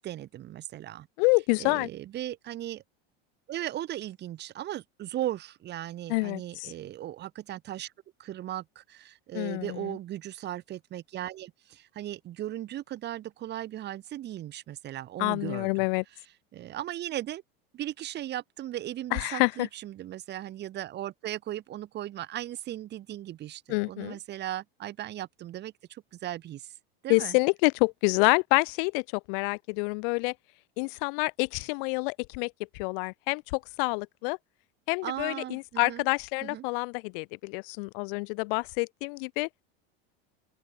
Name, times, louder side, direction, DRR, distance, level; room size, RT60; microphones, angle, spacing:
voice 1, 0.0-1.1 1.6-2.8 3.5-7.9 8.2-15.8 16.5-17.4 17.7-26.7 27.0-27.4 35.0-36.0 36.4-36.6, right 13 dB, 35° right, 1.6 m, -37 dB
voice 2, 1.2-1.9 6.1-6.7 9.3-10.0 15.2-16.0 19.1-19.7 23.7-24.2 27.1-30.3 30.8-34.4 34.9-39.5, left 33 dB, 65° left, 0.6 m, -27 dB
open air
supercardioid pair, 140°, 29 cm